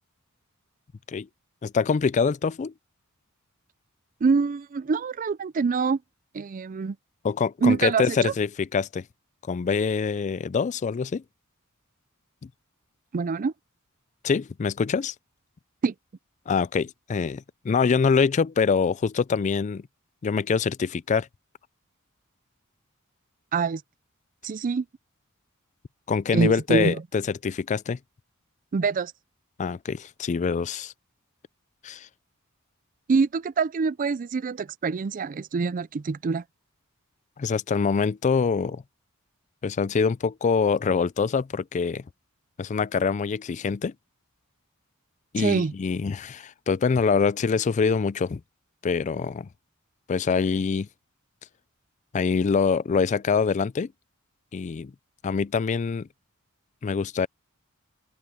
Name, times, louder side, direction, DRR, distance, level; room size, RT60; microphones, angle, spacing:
voice 1, 1.6-2.7 7.2-9.0 9.5-11.2 12.4-12.5 14.2-15.1 16.5-19.9 20.2-21.3 26.1-28.0 29.6-30.9 31.8-32.1 37.4-38.8 39.6-42.0 42.6-43.9 45.3-48.4 48.8-49.5 50.1-50.9 52.1-53.9 54.5-54.9 55.2-56.1 56.8-57.3, left 5 dB, 35° left, 0.3 m, -25 dB
voice 2, 4.2-6.0 6.3-7.0 7.6-8.3 13.1-13.5 15.8-15.9 23.5-23.8 24.4-24.9 26.3-27.0 28.7-29.1 33.1-36.4 45.4-45.7, right 5 dB, 40° right, 0.4 m, -25 dB
open air
head